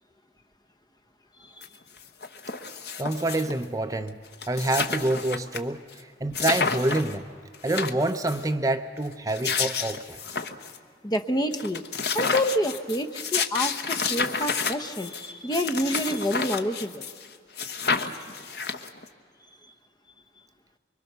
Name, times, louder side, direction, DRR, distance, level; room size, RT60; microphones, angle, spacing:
sound 1, 1.6-1.7 2.0-3.6 4.1-4.2 4.3-5.6 5.9-6.0 6.3-7.1 7.5-8.4 9.1-10.8 11.1-11.2 11.5-17.3 17.6-19.1, left 5 dB, 65° left, 1.1 m, -30 dB
voice 1, 3.0-4.2 4.5-7.3 7.6-10.2, right 2 dB, 20° right, 8 dB, 0.6 m, -27 dB
voice 2, 11.0-11.8 12.1-17.1 19.6-19.7, equal, 20° left, 8 dB, 0.9 m, -28 dB
24.5 x 23.5 x 6.7 m, 2.2 s
head